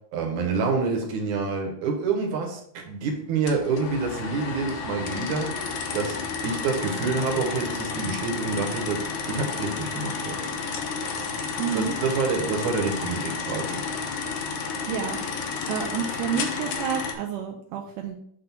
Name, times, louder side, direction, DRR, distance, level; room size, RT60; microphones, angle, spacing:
voice 1, 0.1-5.5 5.9-10.4 11.7-13.8, right 4 dB, 70° right, 1 dB, 2.7 m, -27 dB
sound 1, 3.5-17.1, left 5 dB, 85° left, 1.1 m, -31 dB
voice 2, 11.6-11.9 14.9-15.2 15.7-18.2, right 7 dB, 85° right, 2 dB, 2.2 m, -29 dB
7.7 x 3.1 x 5.9 m, 0.67 s
omnidirectional pair, 3.6 m